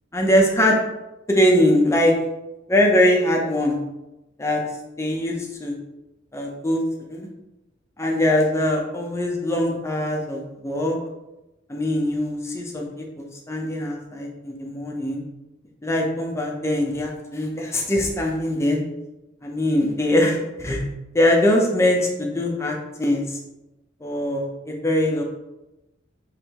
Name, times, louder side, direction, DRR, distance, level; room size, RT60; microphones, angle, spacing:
voice 1, 0.1-0.8 1.3-2.1 2.7-3.8 4.4-4.6 5.0-5.8 6.3-6.8 7.1-7.3 8.0-11.0 11.7-15.2 15.8-18.8 19.4-20.8 21.1-23.4 24.0-25.2, left 1 dB, 15° left, -1 dB, 0.7 m, -22 dB
5.3 x 3.2 x 3.0 m, 0.96 s
head